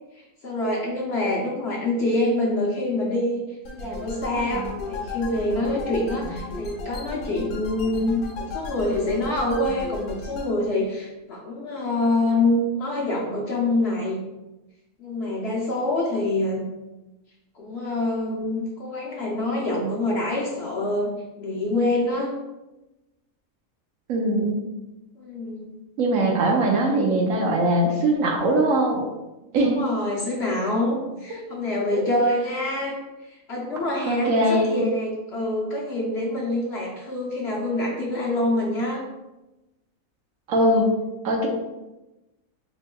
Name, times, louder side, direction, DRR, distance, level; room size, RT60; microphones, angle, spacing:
voice 1, 0.1-3.4 3.7-14.2 15.0-16.6 17.5-21.1 21.4-22.3 25.2-25.7 29.6-39.0, left 1 dB, 55° left, -4 dB, 0.8 m, -26 dB
sound 1, 3.6-10.5, left 3 dB, 80° left, 1.2 m, -35 dB
voice 2, 24.1-24.6 26.0-29.0 29.5-29.8 31.9-32.0 34.1-34.8 40.5-40.9 41.2-41.5, right 1 dB, 70° right, 0 dB, 1.0 m, -21 dB
4.4 x 3.0 x 2.2 m, 1.0 s
omnidirectional pair, 1.6 m